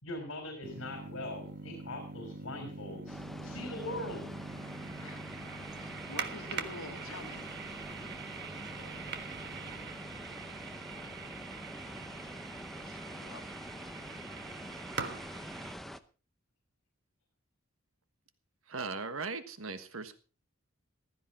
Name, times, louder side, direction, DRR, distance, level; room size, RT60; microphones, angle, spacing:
voice 1, 0.0-4.3, left 1 dB, 65° left, 4 dB, 3.7 m, -41 dB
sound 1, 0.6-15.7, right 5 dB, 50° right, 1.4 m, -43 dB
sound 2, 3.1-16.0, equal, ahead, 0.7 m, -46 dB
voice 2, 5.0-5.3 5.7-7.5 12.5-13.6, left 3 dB, 85° left, 7 dB, 1.7 m, -48 dB
voice 3, 18.7-20.2, right 4 dB, 75° right, 11 dB, 1.3 m, -38 dB
15.0 x 14.0 x 4.3 m, 0.35 s
head